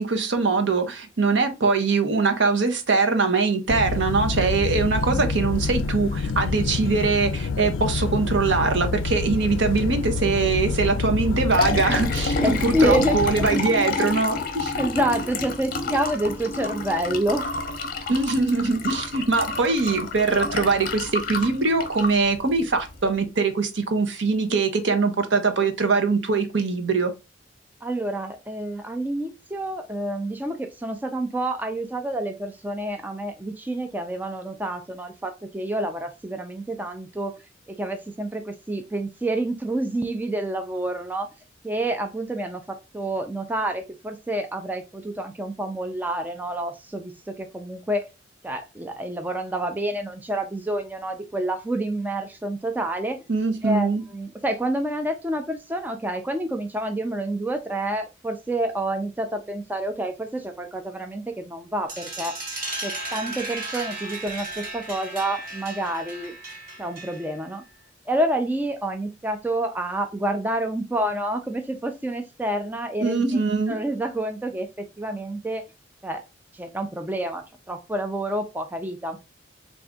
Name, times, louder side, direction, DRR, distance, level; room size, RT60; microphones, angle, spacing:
voice 1, 0.0-14.7 18.1-27.1 53.3-54.0 73.0-73.8, right 4 dB, 70° right, 0.7 m, -22 dB
sound 1, 3.7-13.5, left 4 dB, 85° left, 0.4 m, -27 dB
Liquid, 11.3-23.1, left 3 dB, 50° left, 0.7 m, -29 dB
voice 2, 12.4-13.3 14.8-17.5 27.8-37.3 37.7-41.3 41.6-42.6 42.9-48.1 48.4-53.2 53.6-62.3 62.8-66.4 66.8-67.6 68.1-75.6 76.0-76.2 76.5-79.2, right 1 dB, 10° right, 0.3 m, -28 dB
sound 2, 61.9-67.4, right 2 dB, 50° right, 1.2 m, -35 dB
3.7 x 2.5 x 3.4 m
head